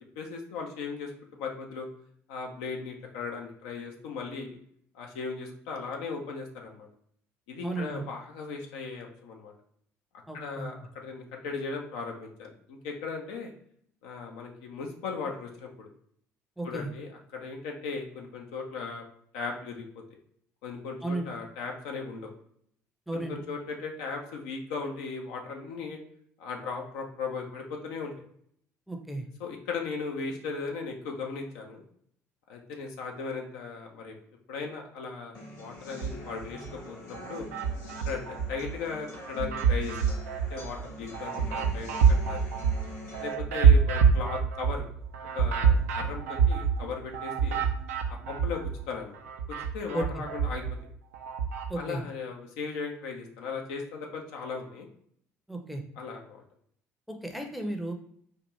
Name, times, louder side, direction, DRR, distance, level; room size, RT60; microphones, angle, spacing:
voice 1, 0.2-1.9 2.3-4.6 4.9-6.9 7.5-9.5 10.3-13.5 14.0-15.9 16.6-19.0 19.3-19.9 20.6-22.3 23.1-26.0 26.4-28.1 29.4-31.8 32.5-34.2 34.5-37.5 38.1-40.2 40.5-42.4 43.2-44.9 45.3-47.6 48.1-49.2 49.5-50.6 51.8-54.9 56.0-56.4, left 4 dB, 65° left, 2 dB, 0.6 m, -37 dB
voice 2, 7.6-8.0 10.3-10.7 16.6-16.9 21.0-21.3 23.1-23.4 28.9-29.3 49.9-50.2 51.7-52.0 55.5-55.8 57.1-57.9, right 1 dB, ahead, 3 dB, 0.6 m, -34 dB
sound 1, 35.3-43.3, left 1 dB, 40° left, 1.1 m, -45 dB
sound 2, 35.9-36.7 37.1-38.7 39.1-48.8 49.1-51.7, right 6 dB, 75° right, 0.4 m, -26 dB
4.3 x 2.5 x 3.1 m, 0.66 s
figure-of-eight pair, 55°, 8 cm